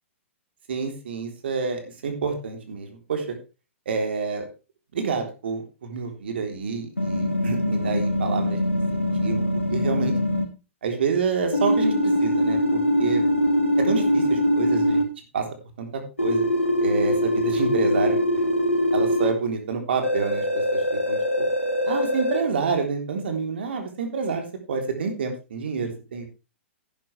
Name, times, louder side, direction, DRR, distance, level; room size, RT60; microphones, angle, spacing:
voice 1, 0.7-3.4 3.9-4.5 4.9-8.6 8.9-9.4 9.7-10.1 10.8-13.2 13.8-15.0 15.3-15.5 15.8-16.4 16.8-18.2 18.9-20.4 20.7-21.5 21.9-26.2, right 5 dB, 55° right, 4 dB, 3.6 m, -28 dB
sound 1, 7.0-10.4 11.5-15.0 16.2-19.3 20.0-22.4, equal, 85° left, 3.0 m, -23 dB
11.0 x 11.0 x 3.3 m, 0.31 s
figure-of-eight pair, 115°, 7 cm